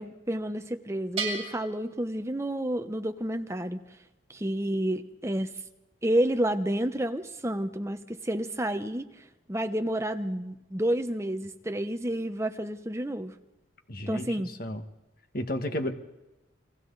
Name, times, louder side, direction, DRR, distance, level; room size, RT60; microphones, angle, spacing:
voice 1, 0.0-3.8 4.3-5.6 6.0-9.1 9.5-13.3 14.1-14.5, right 1 dB, 15° right, 8 dB, 1.0 m, -30 dB
Bell, 1.2-2.9, right 4 dB, 30° right, 6.2 m, -37 dB
voice 2, 13.9-14.8 15.3-15.9, left 1 dB, 50° left, 6 dB, 1.8 m, -32 dB
29.5 x 23.5 x 4.1 m, 1.0 s
head